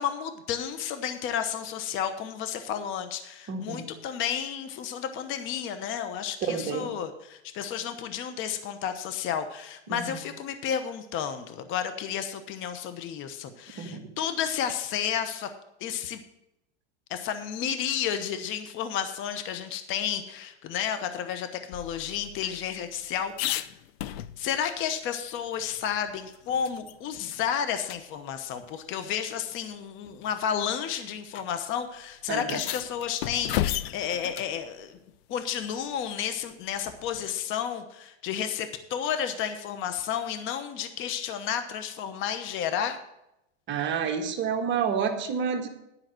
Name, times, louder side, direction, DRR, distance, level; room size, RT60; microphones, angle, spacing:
voice 1, 0.0-15.5 15.8-16.2 17.1-23.7 24.4-35.0 35.3-43.0, left 8 dB, 40° left, 9 dB, 1.0 m, -32 dB
voice 2, 3.5-3.8 6.4-6.9 9.9-10.2 13.8-14.0 32.3-32.6 43.7-45.7, right 6 dB, 35° right, 4 dB, 1.4 m, -29 dB
sound 1, 21.7-24.7 25.1-25.2 25.5-27.0 27.3-27.4 27.8-28.0 29.0-29.1 30.0-30.3 31.3-31.4 31.7-31.8 32.4-34.6 36.8-37.3, left 13 dB, 70° left, 0.7 m, -34 dB
11.0 x 5.7 x 7.7 m, 0.86 s
supercardioid pair, 125°, 32 cm